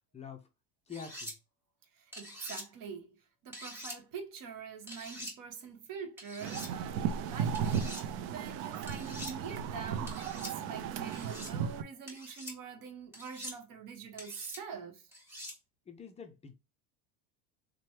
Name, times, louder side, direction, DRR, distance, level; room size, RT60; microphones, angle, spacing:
voice 1, 0.1-0.5 0.9-1.4 15.9-16.5, left 6 dB, 15° left, 0.4 m, -46 dB
sound 1, 0.9-1.3 2.1-2.6 3.5-4.0 4.9-5.3 6.2-6.7 7.5-8.0 8.9-9.3 10.1-10.5 11.1-11.5 12.1-12.5 13.1-13.6 14.2-14.6 15.1-15.6, equal, 5° right, 1.4 m, -45 dB
voice 2, 2.0-3.2 3.4-15.0, right 6 dB, 50° right, 1.1 m, -45 dB
sound 2, 6.4-11.8, right 7 dB, 65° right, 0.6 m, -35 dB
3.1 x 2.2 x 2.8 m
supercardioid pair, 115°, 42 cm